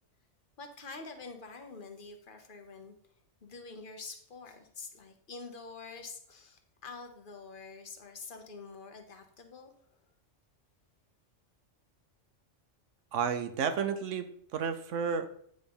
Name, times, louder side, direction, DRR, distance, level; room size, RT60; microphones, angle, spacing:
voice 1, 0.6-2.9 3.4-9.7, left 4 dB, 45° left, 5 dB, 1.2 m, -46 dB
voice 2, 13.1-15.3, right 6 dB, 85° right, 9 dB, 1.2 m, -32 dB
9.1 x 3.9 x 5.3 m, 0.66 s
omnidirectional pair, 1.2 m